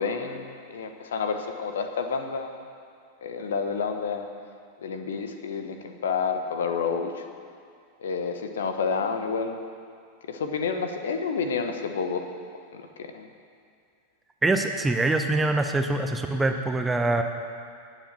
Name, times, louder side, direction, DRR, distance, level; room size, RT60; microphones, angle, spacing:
voice 1, 0.0-2.6 3.2-4.3 4.8-7.2 8.0-9.6 10.3-12.3 12.7-13.3, left 5 dB, 60° left, 6 dB, 1.2 m, -29 dB
voice 2, 14.4-17.2, right 2 dB, 10° right, 5 dB, 1.0 m, -24 dB
19.0 x 7.6 x 6.9 m, 2.3 s
figure-of-eight pair, 90°, 0 cm